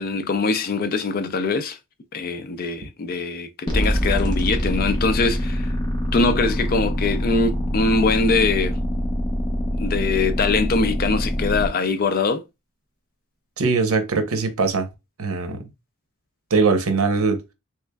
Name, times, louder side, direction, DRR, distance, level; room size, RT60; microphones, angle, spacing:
voice 1, 0.0-1.8 2.1-5.7 6.1-8.8 9.8-12.4, left 4 dB, 45° left, 0.4 m, -22 dB
sound 1, 3.7-11.7, equal, 20° left, 0.9 m, -24 dB
voice 2, 13.6-14.9 15.2-15.6 16.5-17.4, right 4 dB, 80° right, 0.8 m, -21 dB
3.5 x 3.1 x 2.2 m
head